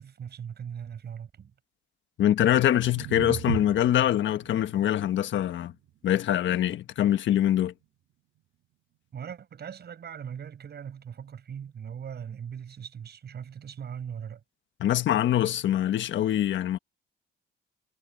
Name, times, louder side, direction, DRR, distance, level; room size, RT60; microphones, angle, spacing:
voice 1, 0.0-1.5 9.1-14.4, right 8 dB, 55° right, 7.7 m, -40 dB
voice 2, 2.2-5.7 6.0-7.7 14.8-16.8, left 11 dB, 70° left, 1.4 m, -24 dB
sound 1, 2.3-8.4, right 12 dB, 75° right, 1.8 m, -40 dB
cardioid pair, 90°, 20 cm